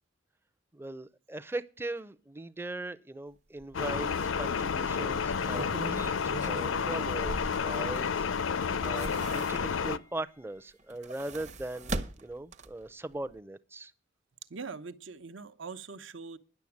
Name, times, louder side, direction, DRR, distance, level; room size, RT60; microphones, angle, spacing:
voice 1, 0.7-13.9, right 2 dB, 10° right, 0.5 m, -40 dB
sound 1, 3.6-3.7 4.1-4.2 5.2-8.2 8.6-10.0 10.8-12.9 13.3-13.4, right 2 dB, 35° right, 0.8 m, -40 dB
sound 2, 3.7-10.0, left 6 dB, 85° left, 0.6 m, -30 dB
voice 2, 14.5-16.4, right 4 dB, 75° right, 0.9 m, -42 dB
10.5 x 6.9 x 8.5 m
head